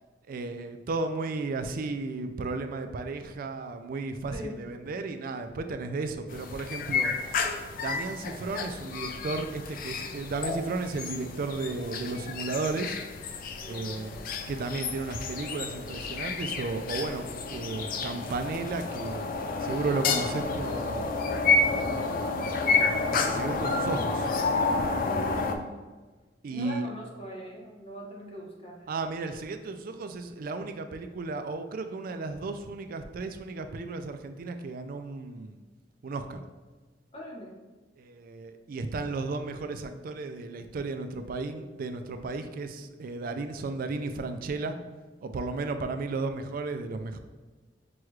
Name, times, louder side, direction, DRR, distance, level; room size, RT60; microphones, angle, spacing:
voice 1, 0.3-7.1 7.7-13.0 13.7-14.2 14.5-19.3 19.6-21.2 21.7-24.3 26.4-26.9 28.9-35.6 36.0-36.4 38.0-44.8 45.2-47.2, right 3 dB, 50° right, 8 dB, 0.3 m, -34 dB
voice 2, 4.3-4.6 13.6-14.2 24.9-25.7 26.5-28.9 37.1-37.6, equal, 30° left, -2 dB, 0.8 m, -41 dB
sound 1, 6.3-25.5, left 4 dB, 50° left, 0.4 m, -30 dB
6.1 x 2.3 x 3.1 m, 1.3 s
head